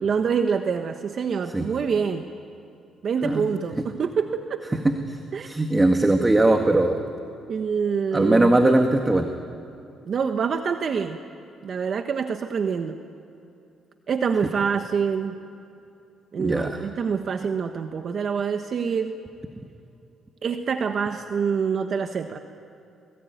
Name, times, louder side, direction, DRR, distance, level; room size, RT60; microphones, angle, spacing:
voice 1, 0.0-2.3 3.0-4.6 5.3-5.5 7.5-8.5 10.1-11.2 11.6-13.0 14.1-15.3 16.3-19.1 20.4-22.4, right 6 dB, 55° right, 7 dB, 1.3 m, -26 dB
voice 2, 4.7-5.2 5.4-7.0 8.1-9.3 16.4-16.8, right 2 dB, 20° right, 4 dB, 1.9 m, -20 dB
28.0 x 21.5 x 9.4 m, 2.7 s
cardioid pair, 90°, 0 cm